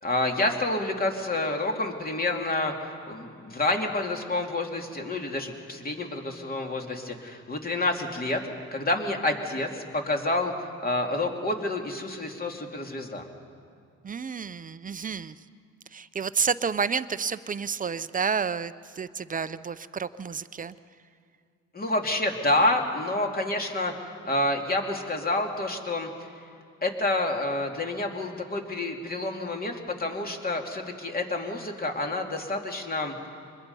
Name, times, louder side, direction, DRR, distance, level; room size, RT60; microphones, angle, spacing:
voice 1, 0.0-8.4 8.7-13.2 21.7-26.1 26.4-26.5 26.8-33.1, left 2 dB, 30° left, 2 dB, 2.6 m, -28 dB
voice 2, 14.0-15.4 15.9-20.7, right 6 dB, 25° right, 15 dB, 0.6 m, -30 dB
25.5 x 21.5 x 5.5 m, 2.3 s
cardioid pair, 90°, 30 cm